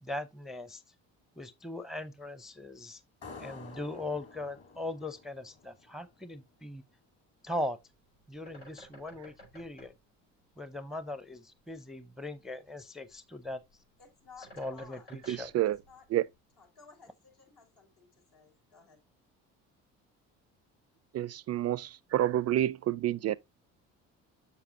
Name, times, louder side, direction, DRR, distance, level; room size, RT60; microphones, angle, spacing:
voice 1, 0.0-0.8 1.4-3.0 3.4-6.8 7.4-7.8 8.3-9.9 10.6-13.6 14.6-15.5, left 1 dB, ahead, 0.6 m, -39 dB
sound 1, 3.2-6.5, left 4 dB, 40° left, 3.0 m, -50 dB
Bird, 7.7-16.8, equal, 90° left, 5.4 m, -57 dB
voice 2, 14.0-15.3 15.9-16.0 16.6-19.0, left 5 dB, 65° left, 4.1 m, -56 dB
voice 3, 15.3-15.8 16.1-16.2 21.1-23.4, right 12 dB, 45° right, 0.4 m, -29 dB
6.9 x 6.9 x 2.6 m
hypercardioid pair, 60°, 37 cm